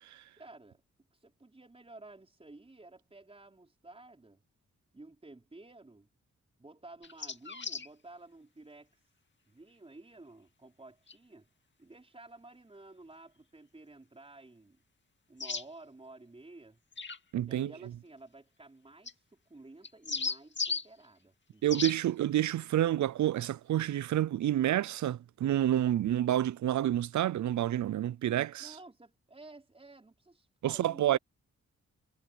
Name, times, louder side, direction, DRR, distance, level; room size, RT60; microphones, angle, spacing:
voice 1, 0.4-0.8 1.1-4.4 4.9-6.1 6.6-8.9 9.5-11.5 11.8-14.8 15.3-16.8 17.5-19.2 19.5-21.9 28.6-31.2, right 2 dB, 20° right, 4.5 m, -53 dB
sound 1, 7.0-7.9 11.1-11.2 15.4-15.6 16.9-17.2 19.1-19.2 19.8-20.9 21.7-22.0, left 4 dB, 40° left, 2.4 m, -35 dB
voice 2, 17.3-17.7 21.6-28.8 30.6-31.2, right 12 dB, 75° right, 0.5 m, -29 dB
wide cardioid pair, 120°, 29 cm